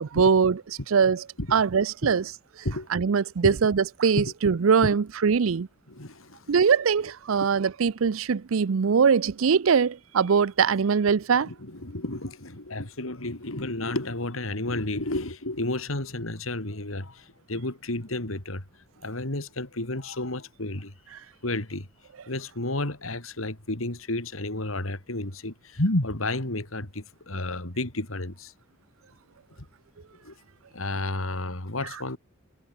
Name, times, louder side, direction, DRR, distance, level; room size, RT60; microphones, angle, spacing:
voice 1, 0.1-0.6 0.9-1.2 1.5-2.2 2.9-5.7 6.5-11.5, right 6 dB, 80° right, 0.5 m, -22 dB
voice 2, 5.9-6.5 11.4-18.6 19.0-20.9 21.4-21.9 22.3-28.5 29.6-29.7 30.2-30.3 30.7-32.2, left 2 dB, 90° left, 3.6 m, -31 dB
head